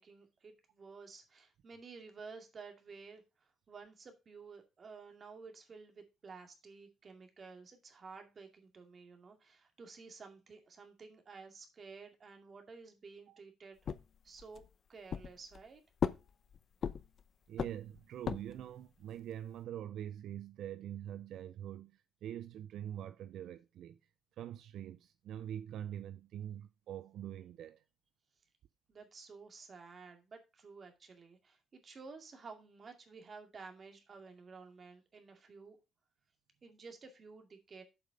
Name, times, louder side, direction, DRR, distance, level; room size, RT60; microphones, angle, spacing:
voice 1, 0.0-13.8 14.2-14.6 14.9-15.8 28.9-35.8 36.6-37.8, right 4 dB, 45° right, 2.3 m, -53 dB
sound 1, 13.9-14.7 15.1-15.7 16.0-17.2 17.6-18.7, left 7 dB, 55° left, 0.6 m, -37 dB
voice 2, 17.5-24.0 24.4-27.8, right 11 dB, 75° right, 0.4 m, -44 dB
7.7 x 5.4 x 5.1 m
cardioid pair, 90°, 0 cm